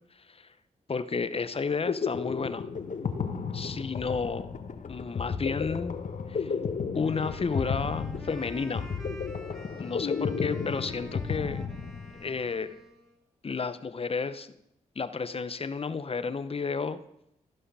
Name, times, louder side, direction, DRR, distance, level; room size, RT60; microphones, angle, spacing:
voice 1, 0.9-2.7 3.5-4.5 4.9-6.0 6.3-6.5 6.9-8.9 9.8-11.6 12.1-12.7 13.4-14.5 15.0-17.0, left 5 dB, 40° left, 13 dB, 0.8 m, -32 dB
sound 1, 1.6-12.4, left 5 dB, 55° left, 1.2 m, -33 dB
Wind instrument woodwind instrument, 7.0-13.2, left 1 dB, ahead, 2.3 m, -48 dB
15.0 x 5.6 x 5.5 m, 0.81 s
supercardioid pair, 45°, 15 cm